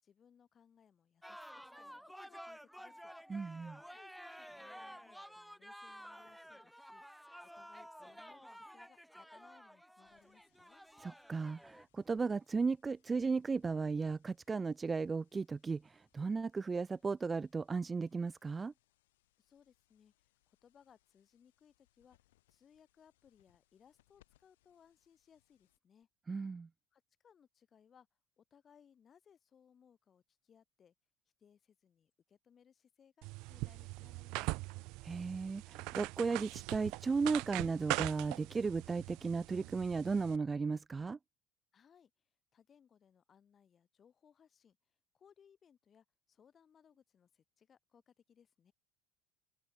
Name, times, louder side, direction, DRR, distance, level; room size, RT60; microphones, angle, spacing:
voice 1, 0.0-3.1 3.9-7.0 7.6-10.8 19.4-20.1 20.5-22.2 22.5-26.1 26.9-28.1 28.4-30.9 31.4-34.9 41.7-42.1 42.5-44.8 45.1-48.7, left 7 dB, 35° left, 5.6 m, -66 dB
sound 1, 1.2-11.9, equal, ahead, 1.4 m, -52 dB
voice 2, 3.3-3.8 11.0-18.7 26.3-26.7 35.0-41.2, right 4 dB, 20° right, 0.3 m, -35 dB
sound 2, 10.0-26.0, left 16 dB, 90° left, 7.9 m, -78 dB
sound 3, 33.2-40.4, right 25 dB, 70° right, 0.9 m, -42 dB
supercardioid pair, 95°, 0 cm